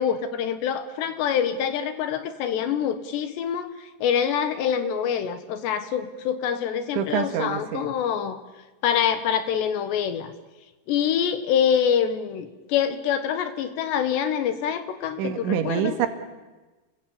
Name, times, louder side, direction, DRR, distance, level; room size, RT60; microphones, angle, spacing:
voice 1, 0.0-8.4 8.8-10.3 10.9-16.0, left 8 dB, 70° left, 10 dB, 3.3 m, -25 dB
voice 2, 7.0-7.9 15.2-16.1, right 9 dB, 75° right, 7 dB, 4.2 m, -26 dB
29.0 x 22.5 x 8.6 m, 1.2 s
omnidirectional pair, 5.5 m